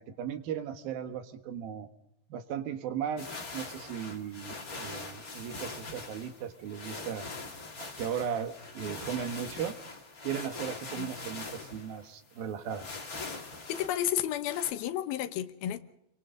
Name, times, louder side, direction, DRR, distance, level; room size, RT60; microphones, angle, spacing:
voice 1, 0.0-1.9 2.3-3.3 3.5-7.2 8.0-9.8 10.2-12.9, right 8 dB, 80° right, 3.3 m, -36 dB
sound 1, 3.2-14.7, left 3 dB, 30° left, 2.3 m, -42 dB
voice 2, 13.7-15.8, left 11 dB, 85° left, 3.0 m, -32 dB
29.0 x 23.5 x 3.9 m
omnidirectional pair, 4.2 m